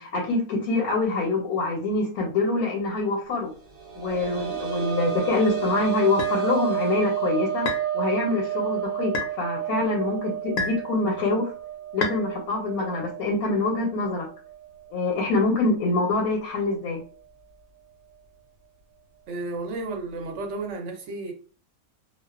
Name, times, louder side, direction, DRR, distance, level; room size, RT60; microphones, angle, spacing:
voice 1, 0.0-3.5 4.0-7.7 7.9-11.5 11.9-14.3 14.9-17.0, left 3 dB, 90° left, 0 dB, 1.1 m, -25 dB
sound 1, 3.6-15.0 15.4-15.5 17.0-17.1, right 11 dB, 80° right, 1.1 m, -31 dB
sound 2, 6.2-6.4 7.7-7.9 9.1-9.4 10.6-10.9 12.0-12.2, left 4 dB, 70° left, 0.8 m, -29 dB
voice 2, 19.3-21.3, right 3 dB, 65° right, 3 dB, 0.8 m, -32 dB
2.3 x 2.2 x 2.3 m, 0.39 s
omnidirectional pair, 1.5 m